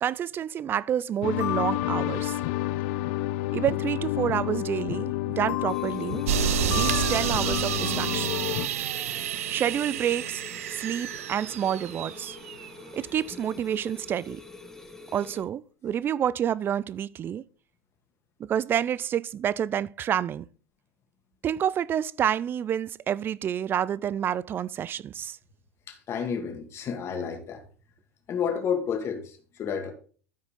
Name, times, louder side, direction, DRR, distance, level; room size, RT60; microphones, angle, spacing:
voice 1, 0.0-2.4 3.5-6.3 6.7-8.3 9.5-10.4 10.7-12.4 12.9-14.4 15.1-17.4 18.4-20.5 21.4-25.4, right 9 dB, 30° right, 0.4 m, -28 dB
sound 1, 1.2-8.7, left 15 dB, 60° left, 0.5 m, -29 dB
sound 2, 5.7-15.4, left 2 dB, 5° left, 1.6 m, -46 dB
sound 3, 6.3-12.7, right 11 dB, 80° right, 0.6 m, -30 dB
voice 2, 25.9-27.6 28.3-29.9, left 7 dB, 35° left, 2.0 m, -30 dB
13.0 x 4.8 x 3.7 m
hypercardioid pair, 105°, 8 cm